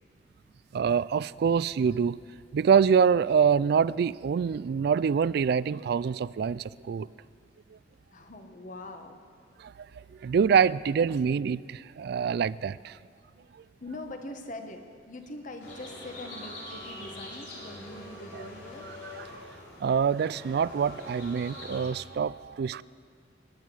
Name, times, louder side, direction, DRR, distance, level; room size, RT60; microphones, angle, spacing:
voice 1, 0.7-2.2 2.5-7.1 9.6-13.0 19.8-22.8, right 6 dB, 55° right, 20 dB, 0.3 m, -25 dB
voice 2, 8.1-9.2 13.8-18.9, left 2 dB, 45° left, 5 dB, 1.3 m, -42 dB
sound 1, 15.6-21.9, left 1 dB, 65° left, 4.4 m, -44 dB
22.0 x 10.0 x 6.2 m, 2.1 s
head